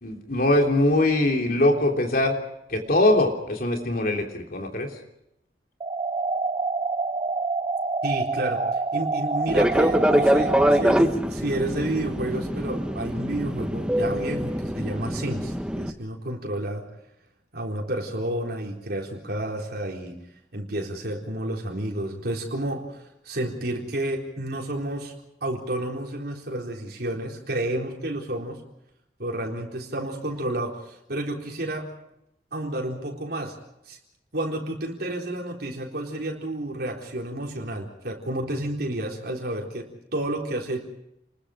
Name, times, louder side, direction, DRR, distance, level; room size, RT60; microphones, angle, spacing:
voice 1, 0.0-2.3 2.7-4.9, left 1 dB, 55° left, 2 dB, 3.3 m, -22 dB
sound 1, 5.8-10.8, right 3 dB, 30° right, 0.9 m, -27 dB
voice 2, 8.0-8.6 8.9-16.9 17.5-20.2 20.5-25.1 25.4-28.6 29.2-31.9 32.5-33.6 33.9-34.0 34.3-40.8, right 1 dB, 65° right, 0 dB, 3.9 m, -30 dB
Fixed-wing aircraft airplane, 9.5-15.9, equal, 5° right, 1.2 m, -24 dB
30.0 x 21.5 x 5.0 m, 0.82 s
head